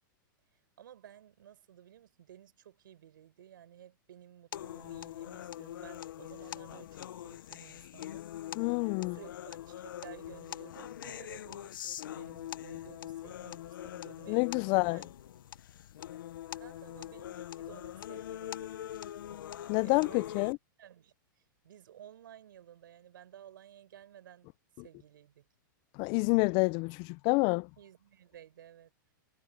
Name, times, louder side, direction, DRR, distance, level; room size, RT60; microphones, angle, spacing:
voice 1, 0.8-15.1 16.5-19.0 19.8-20.5 20.8-21.1 21.6-24.5 24.8-25.5 27.8-28.9, right 10 dB, 80° right, 6.1 m, -55 dB
sound 1, 4.5-20.5, left 12 dB, 75° left, 0.9 m, -43 dB
voice 2, 8.6-9.2 14.3-15.0 19.7-20.6 26.0-27.7, left 29 dB, 40° left, 0.5 m, -28 dB
hypercardioid pair, 130°, 11 cm